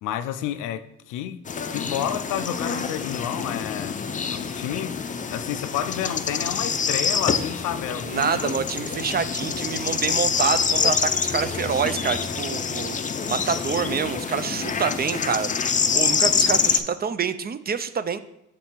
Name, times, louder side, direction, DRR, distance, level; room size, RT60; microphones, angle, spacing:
voice 1, 0.0-1.4 1.7-5.0 5.3-8.6, left 10 dB, 90° left, 0.5 m, -30 dB
sound 1, 1.5-16.8, left 5 dB, 25° left, 0.5 m, -26 dB
voice 2, 8.0-13.0 13.3-15.5 15.9-18.2, right 6 dB, 30° right, 0.4 m, -26 dB
6.5 x 4.2 x 4.4 m
cardioid pair, 90°, 30 cm